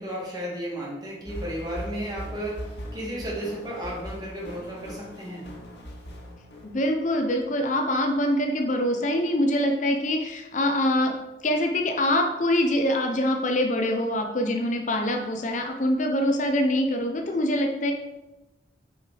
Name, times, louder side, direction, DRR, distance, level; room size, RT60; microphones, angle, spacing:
voice 1, 0.0-5.5, right 1 dB, 25° right, -5 dB, 2.5 m, -34 dB
sound 1, 1.3-7.2, equal, 75° left, 2.1 m, -40 dB
voice 2, 6.6-11.1 11.4-17.9, left 1 dB, 45° left, 4 dB, 0.8 m, -24 dB
8.6 x 4.8 x 5.0 m, 1.0 s
head